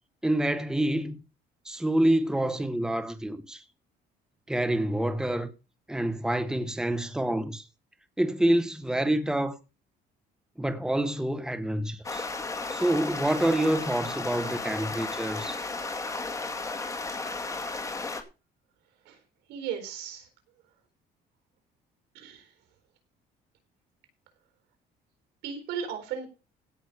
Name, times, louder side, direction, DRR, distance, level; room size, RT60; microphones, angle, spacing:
voice 1, 0.2-1.2 1.6-3.6 4.5-5.5 5.9-7.6 8.2-9.6 10.6-12.3 12.7-15.6, right 1 dB, 5° right, 1.3 m, -27 dB
sound 1, 12.0-18.2, left 3 dB, 20° left, 2.0 m, -34 dB
voice 2, 19.5-20.2 22.1-22.4 25.4-26.3, right 7 dB, 85° right, 4.2 m, -35 dB
16.5 x 6.2 x 5.1 m
cardioid pair, 110°, 17 cm